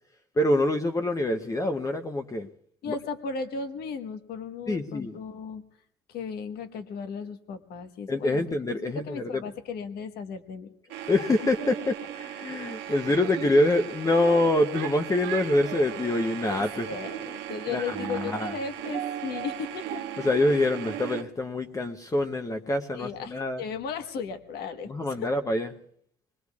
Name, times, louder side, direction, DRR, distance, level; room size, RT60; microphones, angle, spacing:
voice 1, 0.4-2.5 2.9-3.0 4.7-5.2 8.1-9.4 11.1-16.9 17.7-18.5 20.2-23.6 24.9-25.7, left 1 dB, 20° left, 6 dB, 0.7 m, -25 dB
voice 2, 2.8-5.6 6.1-8.4 8.8-11.0 12.9-13.0 16.5-20.3 22.9-25.1, left 5 dB, 70° left, 7 dB, 1.3 m, -36 dB
sound 1, 10.9-21.2, right 11 dB, 90° right, 1.2 m, -36 dB
25.0 x 20.5 x 2.4 m, 0.65 s
cardioid pair, 110°, 17 cm